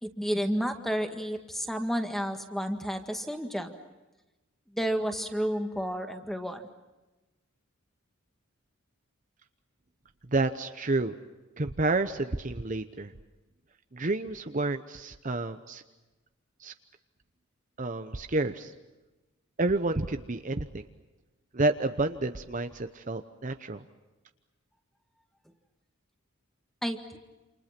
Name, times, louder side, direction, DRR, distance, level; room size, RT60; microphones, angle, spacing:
voice 1, 0.0-3.7 4.7-6.6 26.8-27.2, equal, ahead, 6 dB, 1.9 m, -31 dB
voice 2, 10.3-11.1 11.6-13.1 13.9-15.8 16.6-16.7 17.8-18.7 19.6-20.8 21.5-23.8, right 2 dB, 35° right, 8 dB, 0.9 m, -29 dB
29.0 x 27.5 x 6.0 m, 1.1 s
head